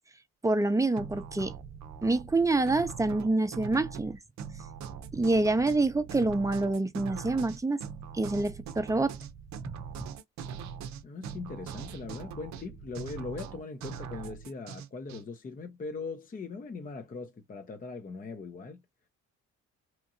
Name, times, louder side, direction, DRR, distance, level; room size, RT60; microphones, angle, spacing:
voice 1, 0.4-1.5 2.0-4.2 5.1-7.8 8.1-9.1, right 2 dB, 10° right, 0.6 m, -26 dB
sound 1, 1.0-15.2, right 7 dB, 65° right, 0.6 m, -42 dB
voice 2, 11.0-18.8, left 4 dB, 30° left, 0.6 m, -40 dB
2.9 x 2.6 x 2.5 m
cardioid pair, 90°, 30 cm